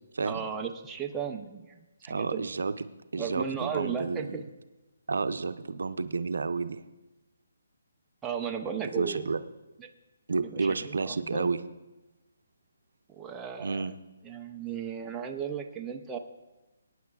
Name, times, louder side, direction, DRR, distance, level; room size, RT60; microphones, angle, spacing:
voice 1, 0.2-2.5 3.2-4.4 8.2-9.3 9.8-9.9 10.4-11.5 13.1-13.9 14.2-16.2, right 7 dB, 10° right, 2 dB, 0.5 m, -35 dB
voice 2, 2.1-2.7 3.1-4.4 5.1-6.8 8.8-9.4 10.3-11.6 13.6-13.9, right 4 dB, 80° right, 11 dB, 0.6 m, -30 dB
22.5 x 9.7 x 2.3 m, 1.1 s
hypercardioid pair, 170°, 0 cm